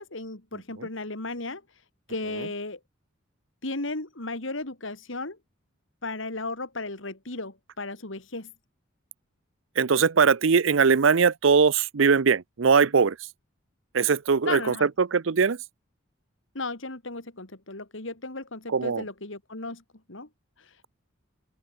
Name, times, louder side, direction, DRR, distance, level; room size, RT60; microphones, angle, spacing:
voice 1, 0.0-1.6 2.1-2.8 3.6-5.4 6.0-8.5 14.4-14.9 16.5-19.8 20.1-20.3 20.6-20.9, left 2 dB, 70° left, 2.9 m, -35 dB
voice 2, 9.8-13.2 13.9-15.6 18.7-19.0, right 5 dB, 70° right, 0.6 m, -21 dB
open air
head